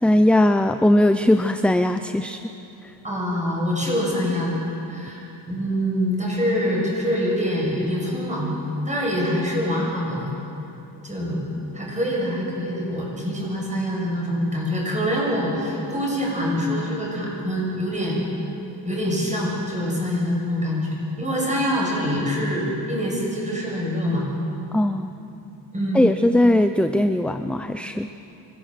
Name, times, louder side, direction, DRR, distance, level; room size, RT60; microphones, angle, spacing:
voice 1, 0.0-2.4 2.8-2.9 24.7-25.1 25.9-28.1, left 1 dB, 5° left, 8 dB, 0.5 m, -19 dB
voice 2, 3.0-4.6 4.8-8.6 8.9-10.3 11.0-11.4 11.7-18.2 18.8-24.3 25.7-26.0, equal, 15° right, -3 dB, 7.2 m, -25 dB
25.0 x 16.0 x 7.7 m, 2.9 s
cardioid pair, 100°, 44 cm